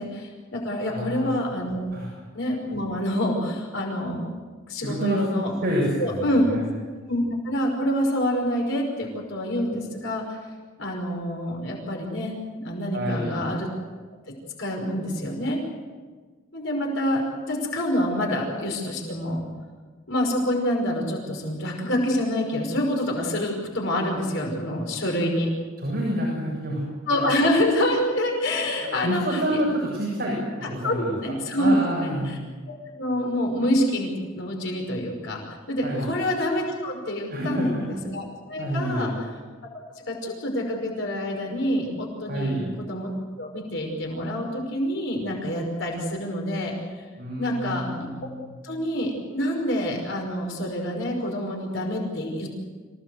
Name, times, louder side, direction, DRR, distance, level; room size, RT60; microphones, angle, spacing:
voice 1, 0.0-1.9 2.3-4.2 4.7-5.5 6.0-6.4 7.1-10.2 10.8-13.7 14.6-15.6 16.5-17.2 17.5-19.4 20.1-25.5 27.1-29.6 30.8-32.4 32.7-39.1 40.1-43.1 43.4-46.7 47.4-48.1 48.6-52.5, left 1 dB, 65° left, 0 dB, 5.5 m, -27 dB
voice 2, 0.9-1.5 1.9-2.1 4.8-5.2 5.6-6.6 12.9-13.4 25.8-27.2 29.0-31.1 31.6-32.4 35.8-36.1 37.3-37.9 38.6-39.1 42.3-42.7 47.2-48.5, equal, 50° right, -4 dB, 7.3 m, -28 dB
26.5 x 17.5 x 7.9 m, 1.4 s
head